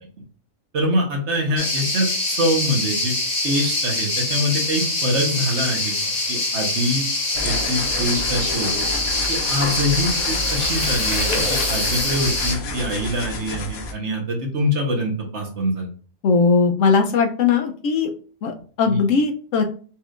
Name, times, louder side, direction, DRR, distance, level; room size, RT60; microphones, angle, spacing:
voice 1, 0.7-3.1 3.4-7.1 7.4-8.9 9.3-15.9 18.9-19.0, equal, 55° right, 1 dB, 1.2 m, -24 dB
sound 1, 1.6-12.5, left 2 dB, 35° left, 0.8 m, -24 dB
sound 2, 7.3-13.9, left 3 dB, 90° left, 1.2 m, -30 dB
voice 2, 16.2-18.1 18.4-19.6, left 5 dB, 70° left, 5 dB, 0.9 m, -19 dB
4.3 x 3.3 x 2.4 m, 0.41 s
omnidirectional pair, 1.5 m